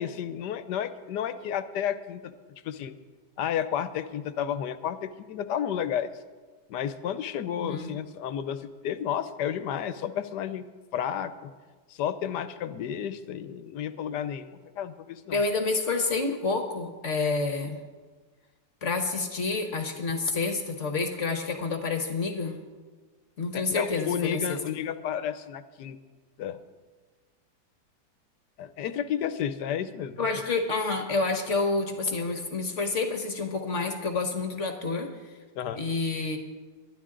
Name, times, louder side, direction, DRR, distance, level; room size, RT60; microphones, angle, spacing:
voice 1, 0.0-2.3 2.6-2.9 3.4-6.1 6.7-10.7 10.9-11.5 11.9-15.4 23.5-26.0 26.4-26.6 28.6-30.2 35.5-35.8, left 9 dB, 75° left, 12 dB, 1.3 m, -32 dB
voice 2, 7.6-7.9 15.3-17.8 18.8-22.6 23.4-24.6 30.2-35.4 35.7-36.4, left 3 dB, 50° left, 5 dB, 1.3 m, -29 dB
22.5 x 11.0 x 3.8 m, 1.4 s
omnidirectional pair, 1.9 m